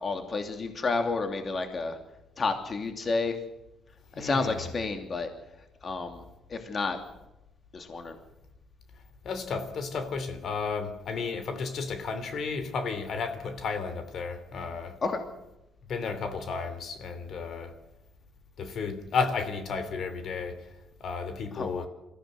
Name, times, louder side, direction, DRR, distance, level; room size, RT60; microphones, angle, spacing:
voice 1, 0.0-2.0 2.4-3.3 4.2-5.3 5.8-6.2 6.5-7.0 7.7-8.2 15.0-15.2 21.5-21.9, left 3 dB, 40° left, 2.7 m, -30 dB
voice 2, 4.1-4.7 9.2-15.0 15.9-17.7 18.6-20.7 21.0-21.9, left 5 dB, 65° left, 3.0 m, -33 dB
23.0 x 15.5 x 8.1 m
cardioid pair, 90°, 0 cm